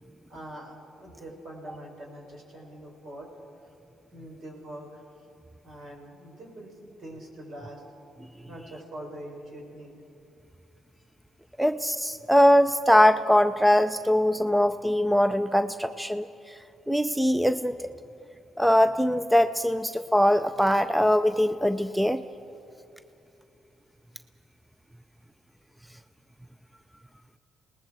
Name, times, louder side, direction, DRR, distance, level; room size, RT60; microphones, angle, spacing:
voice 1, 0.3-3.3 3.6-3.7 4.1-5.0 5.6-6.7 7.0-7.9 8.5-9.9, right 1 dB, 60° right, -2 dB, 5.9 m, -43 dB
voice 2, 11.6-16.3 16.9-17.7 18.6-22.2, equal, ahead, 11 dB, 0.5 m, -22 dB
28.5 x 19.5 x 4.7 m, 2.8 s
cardioid pair, 90°, 0 cm